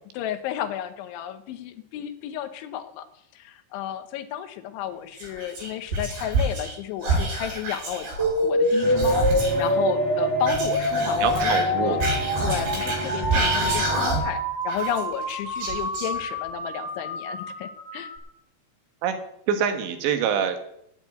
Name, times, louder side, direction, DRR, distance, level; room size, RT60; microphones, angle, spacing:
voice 1, 0.1-3.1 3.3-8.1 8.4-12.0 12.4-18.1, left 11 dB, 80° left, 9 dB, 3.3 m, -32 dB
Whispering, 5.2-6.8 7.0-9.7 10.4-14.4 14.7-16.5, right 2 dB, 55° right, 7.2 m, -28 dB
sound 1, 8.2-18.2, equal, 15° right, 1.0 m, -26 dB
sound 2, 8.8-14.0, right 1 dB, 35° right, 5.2 m, -33 dB
voice 2, 11.2-12.0 19.0-19.2 19.5-20.7, right 8 dB, 75° right, 7 dB, 3.4 m, -25 dB
9.7 x 8.1 x 9.5 m, 0.72 s
omnidirectional pair, 5.5 m